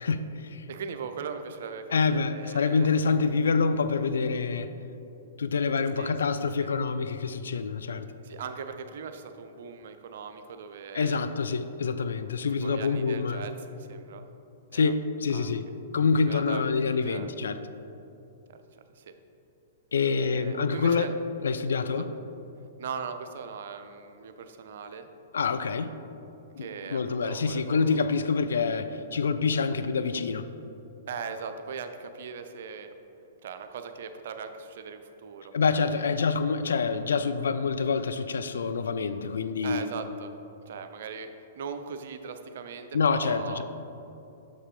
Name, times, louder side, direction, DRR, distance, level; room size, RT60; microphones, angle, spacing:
voice 1, 0.0-0.7 1.9-4.7 5.4-8.1 10.9-13.4 14.7-15.7 15.9-17.6 19.9-21.1 21.4-22.1 25.3-25.9 26.6-30.5 35.5-39.8 42.9-43.6, left 5 dB, 70° left, 11 dB, 0.3 m, -26 dB
voice 2, 0.7-2.9 6.0-6.3 6.6-6.7 8.2-11.2 12.6-14.2 14.7-14.9 15.3-15.5 16.3-17.3 18.5-19.1 20.0-21.1 21.9-22.0 22.8-25.1 26.6-28.1 31.1-32.9 33.4-36.0 39.6-40.3 40.6-43.6, right 6 dB, 60° right, 8 dB, 0.5 m, -39 dB
6.7 x 5.4 x 3.7 m, 2.9 s
figure-of-eight pair, 110°, 0 cm